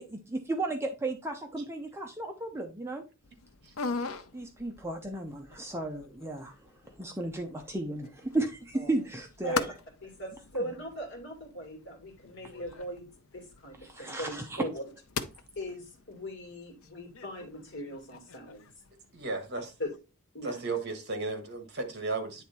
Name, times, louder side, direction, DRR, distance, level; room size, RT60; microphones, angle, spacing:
voice 1, 0.0-3.0 4.3-6.6 7.0-9.6 13.8-14.6, right 2 dB, 10° right, 0.7 m, -34 dB
sound 1, 3.2-20.0, left 4 dB, 85° left, 0.7 m, -43 dB
voice 2, 10.0-13.1 13.3-14.8 15.6-18.7 19.8-19.9 20.3-20.6, equal, 60° left, 2.4 m, -39 dB
voice 3, 19.1-19.7 20.4-22.4, right 3 dB, 50° right, 1.6 m, -34 dB
9.2 x 3.5 x 4.2 m
head